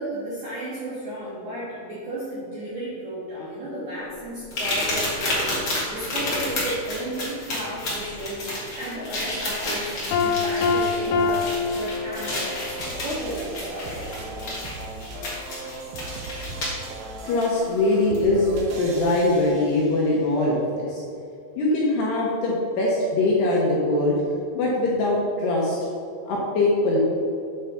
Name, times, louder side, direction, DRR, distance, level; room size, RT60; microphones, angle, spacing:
voice 1, 0.0-9.9 10.2-14.3, right 1 dB, 55° right, -9 dB, 2.2 m, -33 dB
sound 1, 4.5-16.9 18.1-18.2 18.8-18.9, left 1 dB, 55° left, 1.4 m, -30 dB
Piano, 10.1-12.7, left 5 dB, 90° left, 3.3 m, -24 dB
sound 2, 10.9-20.2, right 2 dB, 80° right, 2.2 m, -37 dB
voice 2, 17.2-21.0 21.6-24.2 24.5-25.8 26.3-27.0, left 2 dB, 70° left, -4 dB, 2.6 m, -22 dB
8.2 x 4.8 x 5.6 m, 2.5 s
omnidirectional pair, 5.7 m